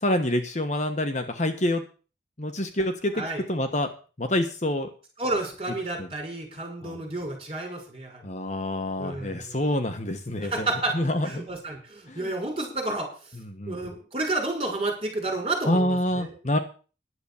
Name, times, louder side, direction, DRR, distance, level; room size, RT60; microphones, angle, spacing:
voice 1, 0.0-1.8 2.4-3.2 3.5-3.9 4.2-4.9 6.0-6.1 6.8-7.0 8.2-10.7 10.9-11.4 12.1-12.3 13.5-13.8 15.7-16.6, left 1 dB, 40° left, 6 dB, 1.3 m, -27 dB
voice 2, 5.2-8.2 9.0-9.6 10.4-10.9 11.2-13.1 13.7-16.3, right 2 dB, 30° right, 1 dB, 6.0 m, -30 dB
11.5 x 8.0 x 7.1 m, 0.36 s
head